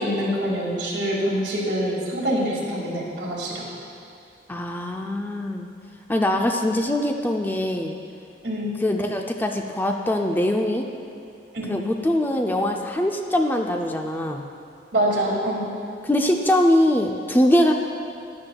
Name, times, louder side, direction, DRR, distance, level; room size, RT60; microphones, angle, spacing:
voice 1, 0.0-3.7 6.3-6.4 8.4-8.7 11.5-11.8 14.9-15.7, equal, 75° right, -4 dB, 2.1 m, -25 dB
voice 2, 4.5-5.7 6.1-8.0 8.8-10.9 11.7-14.4 16.1-17.7, left 1 dB, 10° left, 3 dB, 0.4 m, -22 dB
12.0 x 10.5 x 2.3 m, 2.7 s
head